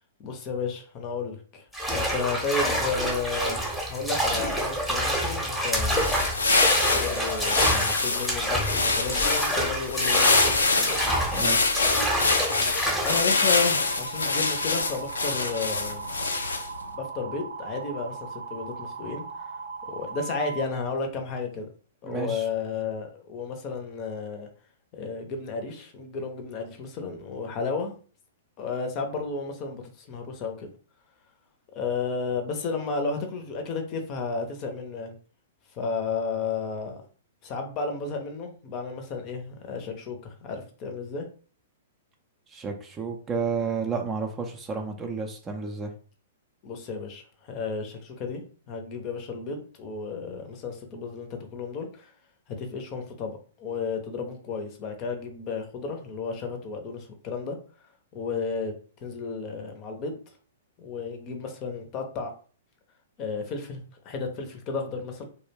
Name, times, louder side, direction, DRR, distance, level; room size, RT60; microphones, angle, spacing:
voice 1, 0.2-1.6 1.9-3.6 3.9-6.2 6.8-10.4 10.8-11.0 13.0-16.1 16.9-19.2 19.9-21.7 22.0-24.5 25.0-27.9 28.6-30.7 31.8-35.1 35.8-37.0 37.4-41.3 46.6-52.1 52.6-57.6 58.1-58.7 59.0-60.1 60.8-62.3 63.2-65.3, left 4 dB, 35° left, 4 dB, 0.6 m, -33 dB
sound 1, 1.7-13.3, equal, ahead, 0.8 m, -27 dB
sound 2, 5.8-16.8, left 3 dB, 80° left, 0.3 m, -25 dB
voice 2, 11.3-11.8 22.0-22.4 42.5-45.9, right 5 dB, 20° right, 4 dB, 0.4 m, -31 dB
sound 3, 13.3-20.6, right 4 dB, 75° right, 0.5 m, -38 dB
2.3 x 2.1 x 3.2 m, 0.41 s
figure-of-eight pair, 110°, 0 cm